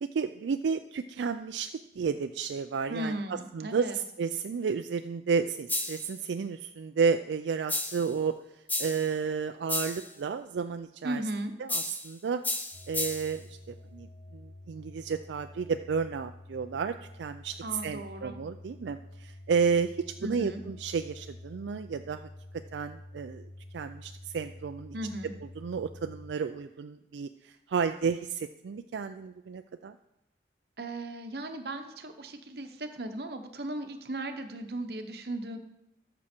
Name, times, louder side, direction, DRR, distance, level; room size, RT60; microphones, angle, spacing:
voice 1, 0.0-3.2 3.5-8.3 8.8-11.2 11.6-12.4 12.9-14.1 14.3-17.5 17.8-22.2 22.7-23.5 23.7-24.9 25.6-30.0, right 5 dB, 90° right, 7 dB, 0.4 m, -32 dB
voice 2, 2.9-4.0 11.0-11.5 17.6-18.4 20.2-20.6 24.9-25.3 30.8-35.6, right 1 dB, 65° right, 7 dB, 0.9 m, -36 dB
sound 1, 5.7-6.1 7.7-8.1 8.7-9.1 9.7-10.1 11.7-12.1 12.4-13.4, left 2 dB, 10° left, 0.5 m, -33 dB
sound 2, 12.7-26.3, left 1 dB, 35° left, 1.1 m, -48 dB
13.0 x 6.2 x 4.4 m, 0.84 s
head